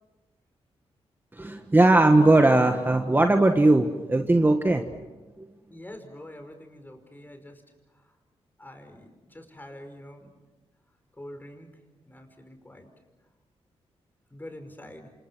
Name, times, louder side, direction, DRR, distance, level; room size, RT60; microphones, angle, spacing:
voice 1, 1.4-4.8 5.4-5.5, right 2 dB, 20° right, 5 dB, 1.6 m, -19 dB
voice 2, 5.7-7.6 7.9-8.2 8.6-10.3 11.1-11.7 12.0-12.9 14.3-15.1, left 1 dB, 15° left, 6 dB, 5.1 m, -45 dB
28.0 x 27.5 x 6.3 m, 1.2 s
cardioid pair, 85°, 11 cm